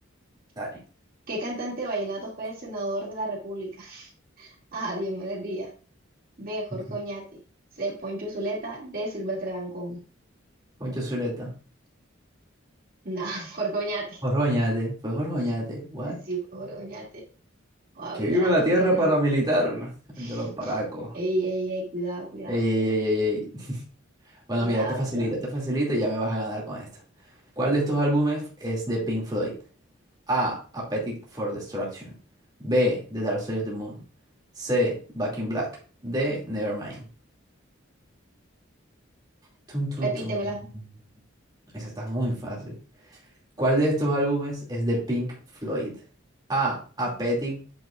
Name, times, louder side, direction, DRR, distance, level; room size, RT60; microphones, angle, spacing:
voice 1, 1.3-4.1 4.4-5.7 6.4-7.2 7.8-10.0 13.0-14.2 16.1-17.2 18.0-19.1 20.2-20.8 21.1-22.6 24.6-25.2 40.0-40.6, right 2 dB, 45° right, -3 dB, 2.4 m, -32 dB
voice 2, 10.8-11.5 14.2-16.2 18.1-19.9 20.2-21.2 22.5-23.8 24.5-26.9 27.6-29.6 30.3-32.1 32.6-34.0 34.6-35.7 36.0-37.0 39.7-40.4 41.7-42.7 43.6-45.3 45.6-45.9 46.5-47.6, equal, 20° right, -4 dB, 2.5 m, -26 dB
8.6 x 7.7 x 2.5 m, 0.38 s
head